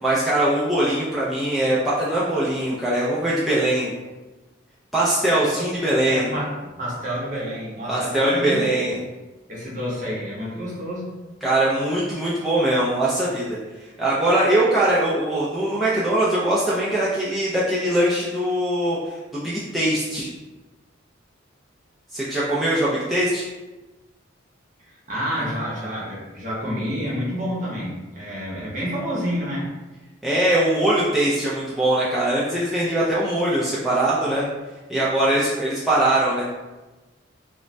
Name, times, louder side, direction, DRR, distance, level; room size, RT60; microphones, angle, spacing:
voice 1, 0.0-3.9 4.9-6.3 7.9-9.0 11.4-13.6 14.0-20.3 22.1-23.5 30.2-34.5 34.9-36.4, right 1 dB, ahead, -9 dB, 0.3 m, -21 dB
voice 2, 6.0-9.0 9.5-11.2 24.8-29.7, equal, 40° right, -6 dB, 0.8 m, -29 dB
2.5 x 2.1 x 3.1 m, 1.2 s
head